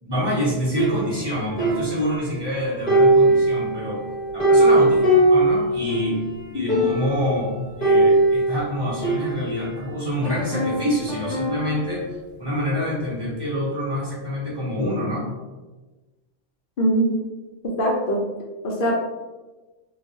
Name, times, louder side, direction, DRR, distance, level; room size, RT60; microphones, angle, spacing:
voice 1, 0.0-4.0 4.3-6.2 6.5-15.3, left 1 dB, 25° right, -7 dB, 0.8 m, -26 dB
sound 1, 0.8-2.5 2.9-6.2 6.4-6.5 6.7-7.3 7.8-9.8 10.2-11.9, right 1 dB, 40° left, 0.9 m, -20 dB
voice 2, 16.8-17.1 17.6-18.2 18.6-18.9, right 1 dB, 55° left, -2 dB, 0.7 m, -22 dB
2.4 x 2.2 x 3.9 m, 1.2 s
omnidirectional pair, 1.2 m